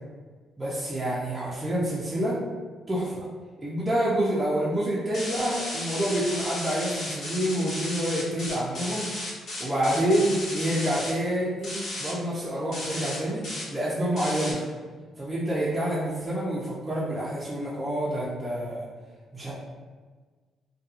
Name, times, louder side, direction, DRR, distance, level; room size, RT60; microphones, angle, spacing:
voice 1, 0.6-2.4 2.9-3.3 3.6-9.1 9.6-11.7 12.0-13.4 13.7-14.6 15.2-18.8 19.3-19.5, right 1 dB, 15° right, -8 dB, 0.5 m, -27 dB
sound 1, 5.1-11.1 11.6-12.1 12.7-13.2 13.4-13.6 14.2-14.5, left 1 dB, 70° left, 0.9 m, -34 dB
2.8 x 2.2 x 2.4 m, 1.5 s
cardioid pair, 90°, 0 cm